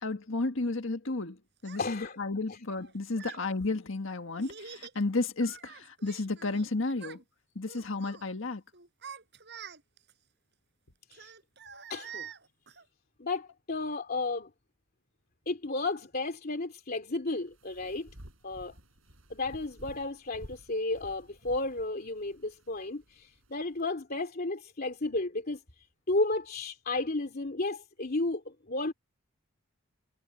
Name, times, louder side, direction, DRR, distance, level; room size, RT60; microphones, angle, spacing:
voice 1, 0.0-7.2 7.6-8.6, left 3 dB, 70° left, 1.7 m, -32 dB
Child speech kid speaking, 1.6-1.8 2.7-3.5 4.4-5.0 5.4-6.7 6.9-7.2 7.6-8.2 8.7-10.1 11.1-12.8, right 7 dB, 55° right, 5.9 m, -46 dB
voice 2, 1.8-2.2 2.5-2.6 3.3-3.4 11.1-11.3 11.9-12.3 13.2-14.5 15.5-18.1 18.4-18.7 19.3-25.6 26.1-28.9, left 2 dB, 45° left, 2.9 m, -33 dB
sound 1, 17.4-23.8, equal, 80° right, 7.9 m, -53 dB
head